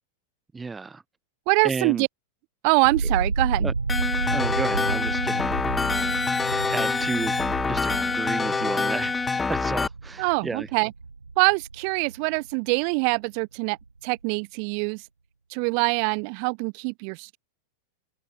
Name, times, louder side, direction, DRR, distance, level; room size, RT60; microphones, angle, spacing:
voice 1, 0.5-1.0 1.6-2.1 3.6-3.7 4.3-5.5 6.7-7.4 7.7-9.1 9.5-10.7, right 4 dB, 15° right, 0.9 m, -32 dB
voice 2, 1.5-2.1 2.6-3.7 10.2-10.9 11.4-13.8 14.0-15.0 15.5-17.4, right 40 dB or more, 45° right, 1.3 m, -24 dB
sound 1, 2.8-12.8 13.1-13.8, right 4 dB, 80° right, 1.1 m, -31 dB
sound 2, 3.9-9.9, left 4 dB, 15° left, 0.9 m, -26 dB
figure-of-eight pair, 90°, 0 cm